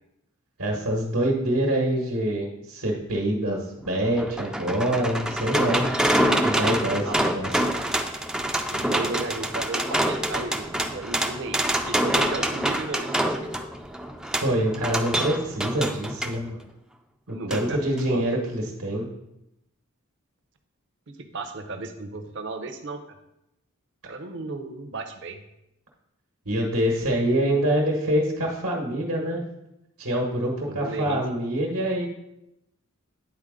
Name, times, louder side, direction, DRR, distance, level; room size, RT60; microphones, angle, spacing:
voice 1, 0.6-5.9 6.4-7.7 14.4-16.6 17.3-19.1 26.4-29.4 30.0-32.1, right 1 dB, 85° right, -1 dB, 1.3 m, -25 dB
sound 1, 3.8-16.4 17.5-17.6 18.0-18.1, right 1 dB, 5° right, 0.3 m, -26 dB
voice 2, 8.7-13.3 17.3-17.8 18.1-18.2 21.3-23.0 24.0-25.4 30.6-31.2, right 3 dB, 55° right, 6 dB, 0.8 m, -34 dB
9.7 x 4.1 x 3.7 m, 0.85 s
head